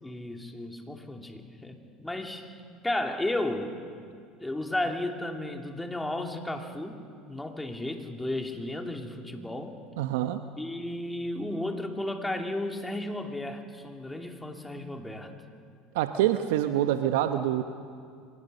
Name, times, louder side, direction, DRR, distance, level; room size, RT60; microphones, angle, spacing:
voice 1, 0.0-2.5 2.8-3.7 4.4-7.0 7.3-9.8 10.6-15.3, left 1 dB, 10° left, 3 dB, 2.8 m, -33 dB
voice 2, 10.0-10.4 15.9-17.6, right 12 dB, 75° right, 9 dB, 0.8 m, -26 dB
24.0 x 19.5 x 6.7 m, 2.3 s
hypercardioid pair, 75°, 0 cm